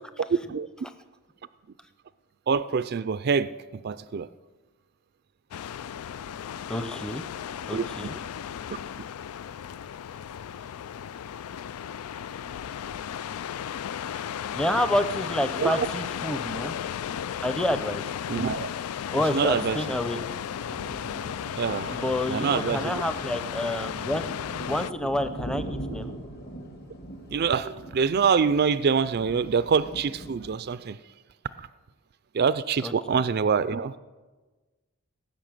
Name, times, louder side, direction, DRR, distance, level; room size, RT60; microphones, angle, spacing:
voice 1, 0.2-0.7 2.5-4.3 7.7-7.8 15.6-15.9 18.3-18.7 19.3-19.8 21.6-23.0 27.3-31.0 31.6-31.7 32.3-33.9, right 6 dB, 45° right, 15 dB, 0.4 m, -25 dB
sound 1, 5.5-24.9, left 9 dB, 85° left, 0.4 m, -35 dB
voice 2, 6.7-7.2 7.7-8.1 14.5-16.8 17.4-18.0 19.1-20.2 21.9-24.2 24.7-26.1 32.8-33.2, left 1 dB, 5° left, 9 dB, 0.6 m, -28 dB
sound 2, 20.0-30.6, right 1 dB, 50° left, 1.8 m, -41 dB
18.5 x 6.6 x 9.0 m, 1.3 s
head